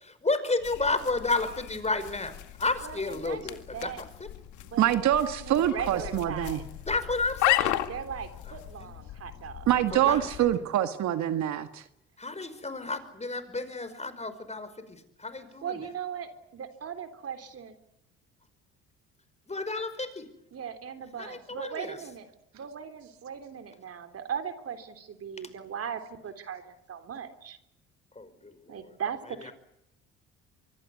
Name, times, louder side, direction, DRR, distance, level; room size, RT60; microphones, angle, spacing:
voice 1, 0.0-4.3 6.9-7.8 8.5-8.9 9.9-10.5 12.2-15.9 19.5-20.3 21.2-22.0 28.1-29.0 29.4-29.5, left 3 dB, 20° left, 12 dB, 5.4 m, -32 dB
sound 1, 0.6-10.5, left 14 dB, 75° left, 2.1 m, -35 dB
voice 2, 2.8-4.0 4.6-6.7 7.9-9.7 10.0-10.4 15.6-17.8 20.5-22.3 22.5-27.6 28.7-29.5, right 7 dB, 50° right, 8 dB, 3.5 m, -38 dB
voice 3, 4.8-6.6 9.7-11.8, right 11 dB, 65° right, 9 dB, 1.7 m, -25 dB
25.0 x 24.0 x 8.5 m, 0.79 s
supercardioid pair, 70°, 30 cm